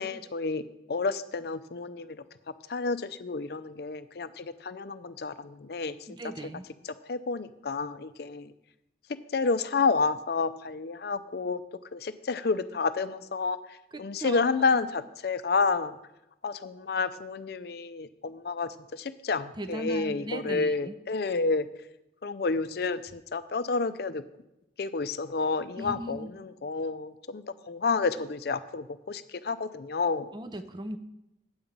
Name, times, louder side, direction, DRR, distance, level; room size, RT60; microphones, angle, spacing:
voice 1, 0.0-2.2 2.7-5.9 7.1-8.5 9.3-11.6 11.9-13.6 14.0-16.0 16.4-21.7 22.2-24.2 24.8-30.3, left 4 dB, 55° left, 13 dB, 0.5 m, -30 dB
voice 2, 6.1-6.7 13.9-14.8 19.6-21.0 25.8-26.3 30.3-31.0, right 1 dB, 25° right, 9 dB, 0.5 m, -38 dB
8.7 x 5.3 x 7.3 m, 0.89 s
head